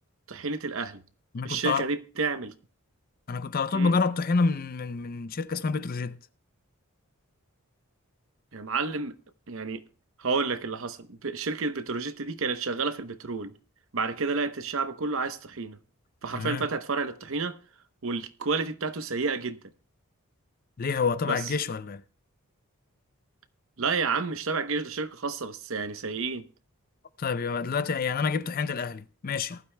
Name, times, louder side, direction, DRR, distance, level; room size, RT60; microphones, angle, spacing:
voice 1, 0.3-1.0 1.4-2.5 3.7-3.9 8.5-9.2 9.5-9.8 10.2-13.5 13.9-15.8 16.2-17.5 18.0-19.6 21.2-21.5 23.8-26.4, right 4 dB, 60° right, 0.8 m, -30 dB
voice 2, 1.3-1.9 3.3-6.2 16.3-16.7 20.8-22.0 27.2-29.6, left 4 dB, 40° left, 0.5 m, -28 dB
19.5 x 12.0 x 2.2 m
head